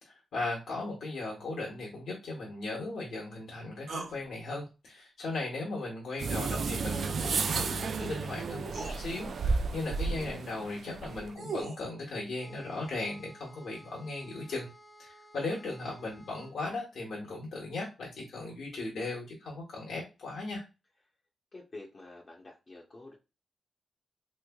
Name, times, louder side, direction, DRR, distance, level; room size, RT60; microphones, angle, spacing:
voice 1, 0.0-14.7 15.0-20.6, left 2 dB, 75° left, -3 dB, 1.1 m, -37 dB
sound 1, 3.9-4.2 6.5-6.7 8.1-8.2 8.7-9.0 11.0-11.8, right 4 dB, 80° right, 1.0 m, -38 dB
sound 2, 6.2-11.3, right 4 dB, 60° right, 0.3 m, -32 dB
sound 3, 12.4-16.6, equal, 5° right, 0.5 m, -55 dB
voice 2, 21.5-23.2, left 2 dB, 35° left, -2 dB, 0.7 m, -48 dB
3.3 x 3.1 x 2.3 m, 0.28 s
cardioid pair, 105°, 0 cm